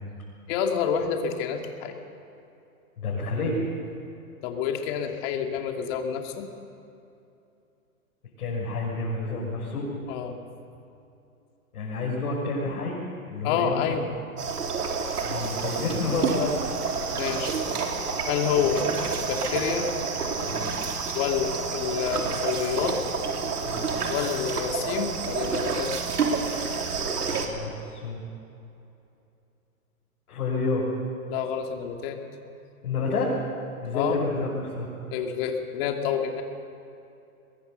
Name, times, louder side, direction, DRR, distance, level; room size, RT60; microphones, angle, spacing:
voice 1, 0.5-2.0 4.4-6.5 10.1-10.4 13.4-14.0 17.2-17.6 18.3-18.9 19.3-19.9 21.1-23.0 24.1-25.9 31.3-32.2 33.9-34.2 35.1-36.4, left 8 dB, 40° left, 3 dB, 2.7 m, -28 dB
voice 2, 3.0-3.6 8.4-9.9 11.7-13.0 13.3-14.0 15.2-16.6 18.6-18.7 20.5-20.8 23.6-23.9 25.8-25.9 27.2-28.2 30.3-30.8 32.8-33.3 33.8-34.9, left 3 dB, 70° left, -5 dB, 6.5 m, -29 dB
sound 1, 14.4-27.5, right 5 dB, 85° right, 3.5 m, -29 dB
22.5 x 22.5 x 6.7 m, 2.7 s
hypercardioid pair, 135°, 44 cm